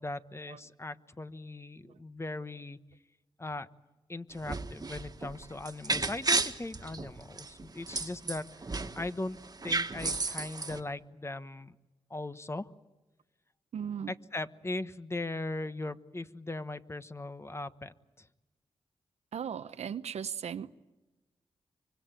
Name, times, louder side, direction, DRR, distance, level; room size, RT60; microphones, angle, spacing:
voice 1, 0.0-2.8 3.4-3.7 4.1-9.4 9.6-11.8 12.1-12.7 14.1-18.3, left 2 dB, 25° left, 1.2 m, -39 dB
sound 1, 4.3-9.1 9.3-10.8, right 3 dB, 35° right, 1.7 m, -33 dB
voice 2, 13.7-14.1 19.3-20.9, right 8 dB, 85° right, 0.9 m, -38 dB
24.5 x 24.0 x 9.0 m
cardioid pair, 65°, 11 cm